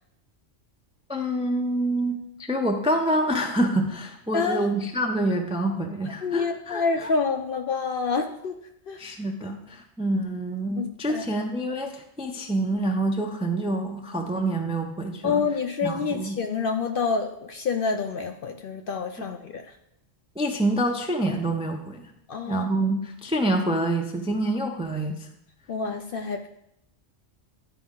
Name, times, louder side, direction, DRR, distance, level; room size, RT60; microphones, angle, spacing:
voice 1, 1.1-7.1 9.0-15.5 15.8-16.4 20.4-22.1 22.5-25.3, right 1 dB, 10° right, 3 dB, 0.3 m, -27 dB
voice 2, 4.3-4.7 6.2-8.6 8.9-9.0 10.8-11.2 15.2-19.6 22.3-22.7 25.7-26.5, left 5 dB, 60° left, 6 dB, 0.6 m, -27 dB
9.9 x 5.0 x 3.7 m, 0.79 s
omnidirectional pair, 1.3 m